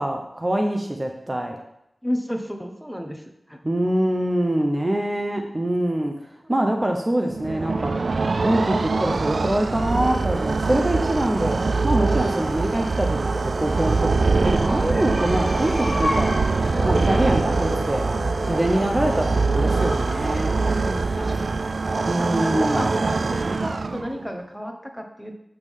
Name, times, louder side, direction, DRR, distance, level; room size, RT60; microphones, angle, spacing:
voice 1, 0.0-1.6 3.6-6.1 6.5-8.0 8.4-13.3 13.6-16.3 16.8-18.1 18.4-20.5 22.1-22.8, right 1 dB, 30° right, 3 dB, 0.7 m, -24 dB
voice 2, 2.0-3.6 18.7-19.1 20.6-21.5 22.2-25.4, equal, 5° right, 4 dB, 1.0 m, -33 dB
sound 1, 7.3-24.3, right 3 dB, 70° right, 0.3 m, -23 dB
sound 2, 13.1-22.6, left 1 dB, 20° left, 1.7 m, -34 dB
8.1 x 5.4 x 3.6 m, 0.79 s
wide cardioid pair, 50°, 0 cm